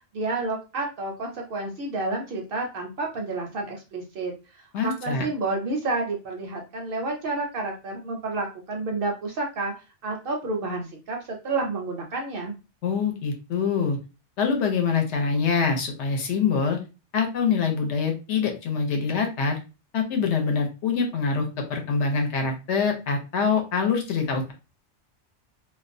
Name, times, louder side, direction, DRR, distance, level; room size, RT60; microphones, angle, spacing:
voice 1, 0.1-9.7 10.0-12.5, right 3 dB, 60° right, 1 dB, 0.6 m, -30 dB
voice 2, 4.7-5.3 12.8-14.0 14.4-16.8 17.1-19.6 19.9-24.5, left 5 dB, 75° left, 4 dB, 0.9 m, -25 dB
2.4 x 2.0 x 2.5 m, 0.30 s
omnidirectional pair, 1.2 m